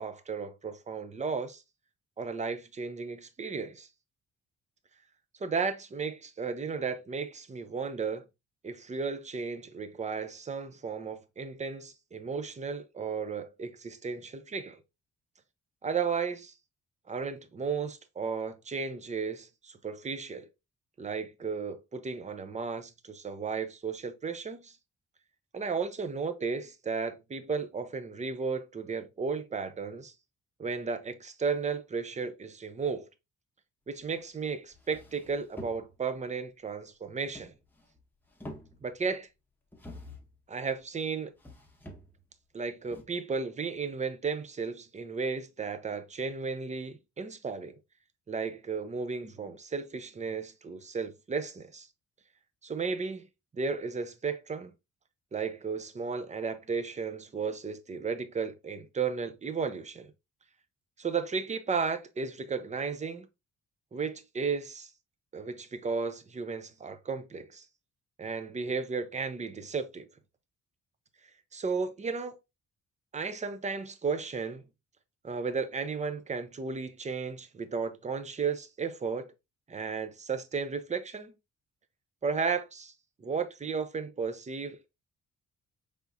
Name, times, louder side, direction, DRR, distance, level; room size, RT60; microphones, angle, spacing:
voice 1, 0.0-1.6 2.2-3.9 5.4-8.2 8.6-14.8 15.8-16.5 17.1-20.5 21.0-24.8 25.5-30.1 30.6-33.1 33.9-37.5 38.8-39.3 40.5-41.3 42.5-47.8 48.3-51.9 52.6-53.3 53.5-54.7 55.3-60.1 61.0-63.3 63.9-64.9 65.3-67.7 68.2-70.1 71.5-72.4 73.1-74.7 75.2-79.3 79.7-81.3 82.2-82.9 83.2-84.9, right 5 dB, 25° right, 0.5 m, -34 dB
sound 1, 34.3-34.4 34.7-36.2 37.2-38.0 38.3-39.1 39.7-40.4 41.4-42.3 42.9-43.0, left 1 dB, 5° left, 0.8 m, -47 dB
4.8 x 3.5 x 2.6 m
cardioid pair, 115°, 29 cm